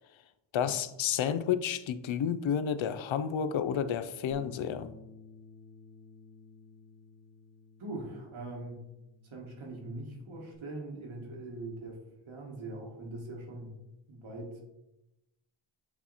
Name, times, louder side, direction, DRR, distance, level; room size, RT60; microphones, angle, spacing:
voice 1, 0.5-4.9, left 8 dB, 75° left, 12 dB, 0.5 m, -31 dB
Bass guitar, 4.3-10.6, left 5 dB, 25° left, 0.9 m, -54 dB
voice 2, 7.8-8.8 9.2-12.0 12.3-13.7 14.1-14.5, right 2 dB, 80° right, -1 dB, 1.7 m, -41 dB
8.1 x 2.9 x 4.0 m, 0.94 s
cardioid pair, 70°, 47 cm